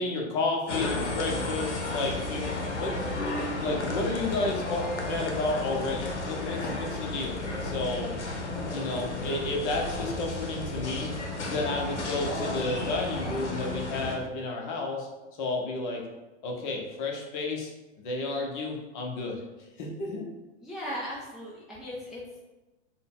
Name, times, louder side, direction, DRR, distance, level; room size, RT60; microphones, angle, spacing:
voice 1, 0.0-2.9 3.6-7.4 7.6-8.1 8.7-11.1 11.5-15.1 15.4-16.0 16.4-17.7 18.0-19.4 19.8-20.3, left 2 dB, 45° left, 0 dB, 0.9 m, -31 dB
sound 1, 0.7-14.2, left 2 dB, 85° left, 0.8 m, -33 dB
voice 2, 20.6-22.4, equal, ahead, -7 dB, 0.4 m, -38 dB
3.8 x 2.2 x 3.8 m, 1.1 s
hypercardioid pair, 110°, 34 cm